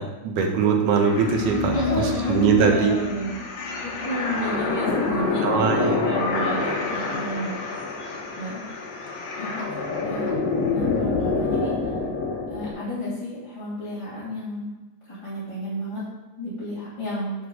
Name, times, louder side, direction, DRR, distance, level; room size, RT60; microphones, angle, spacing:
voice 1, 0.0-2.9 5.4-6.1, right 6 dB, 75° right, 3 dB, 2.3 m, -22 dB
sound 1, 1.0-12.7, left 3 dB, 60° left, 2.0 m, -27 dB
voice 2, 1.7-3.3 3.8-7.6 8.4-8.6 9.4-9.7 10.0-10.3 10.7-11.9 12.5-14.7 15.1-16.0 16.4-17.3, equal, 10° left, -11 dB, 1.7 m, -31 dB
6.2 x 5.0 x 5.2 m, 1.1 s
omnidirectional pair, 3.8 m